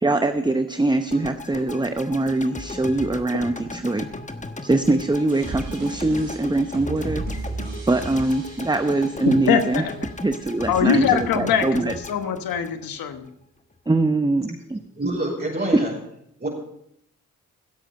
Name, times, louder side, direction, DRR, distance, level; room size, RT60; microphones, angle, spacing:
voice 1, 0.0-4.1 4.6-7.2 7.9-9.8 10.2-11.9 13.9-14.8, right 2 dB, 15° right, 8 dB, 0.8 m, -22 dB
sound 1, 1.1-13.3, left 2 dB, 20° left, 1.2 m, -37 dB
sound 2, 5.3-10.2, right 2 dB, 85° right, 5.4 m, -35 dB
voice 2, 9.3-9.9 10.7-13.3, left 8 dB, 85° left, 8 dB, 1.3 m, -22 dB
voice 3, 15.0-15.9 16.4-16.5, right 1 dB, 30° right, -3 dB, 5.1 m, -26 dB
16.5 x 8.0 x 5.3 m, 0.74 s
supercardioid pair, 45°, 34 cm